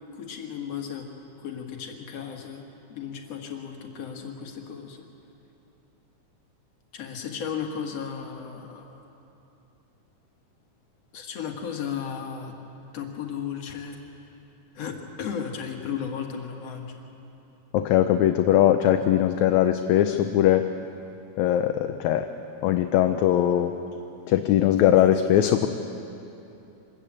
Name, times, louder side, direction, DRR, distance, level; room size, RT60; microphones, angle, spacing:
voice 1, 0.2-1.1 1.4-2.6 2.9-5.0 6.9-9.0 11.1-12.6 12.9-14.0 14.7-17.0, left 7 dB, 60° left, 2 dB, 2.7 m, -35 dB
voice 2, 17.7-20.7 21.4-22.3 22.6-23.7 24.3-25.7, left 11 dB, 75° left, 7 dB, 2.0 m, -20 dB
25.5 x 13.5 x 8.8 m, 2.9 s
omnidirectional pair, 3.4 m